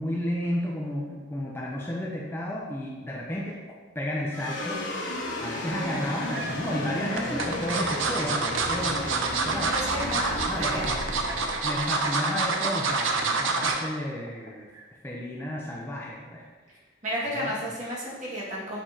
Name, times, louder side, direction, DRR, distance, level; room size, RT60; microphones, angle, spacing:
voice 1, 0.0-3.6 4.0-4.8 5.4-9.7 10.0-10.9 11.6-14.7 15.0-16.4 17.3-17.5, left 1 dB, 10° left, -3 dB, 0.6 m, -32 dB
sound 1, 4.3-12.9, left 1 dB, 75° left, 1.2 m, -35 dB
sound 2, 5.9-6.5 7.2-13.9 14.3-14.5 14.8-14.9, right 4 dB, 85° right, 0.7 m, -27 dB
voice 2, 9.5-11.0 11.4-11.7 17.0-18.8, equal, 40° right, -7 dB, 1.8 m, -32 dB
7.5 x 5.0 x 2.8 m, 1.3 s
head